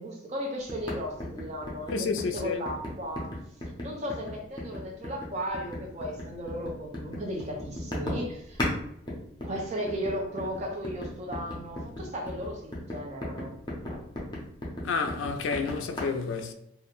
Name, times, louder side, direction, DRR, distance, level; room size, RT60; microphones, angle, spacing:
voice 1, 0.0-3.3 3.8-8.7 9.4-13.5, equal, 35° right, 0.5 m, -35 dB
sound 1, 0.7-8.8 9.1-16.0, left 1 dB, 20° left, 0.5 m, -36 dB
voice 2, 1.9-2.6 14.8-16.5, left 4 dB, 75° left, 0.3 m, -30 dB
2.3 x 2.1 x 3.0 m
head